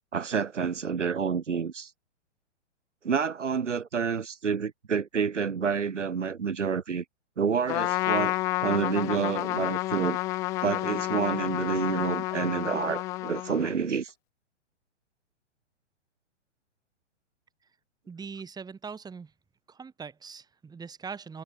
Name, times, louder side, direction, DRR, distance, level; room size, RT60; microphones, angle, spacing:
voice 1, 0.1-1.9 3.0-7.0 7.4-10.2 10.6-14.1, right 6 dB, 80° right, 5.8 m, -29 dB
Trumpet, 7.7-13.9, left 18 dB, 10° left, 0.3 m, -30 dB
voice 2, 18.1-19.3 19.7-21.4, right 5 dB, 10° right, 3.8 m, -41 dB
hypercardioid pair, 125°, 36 cm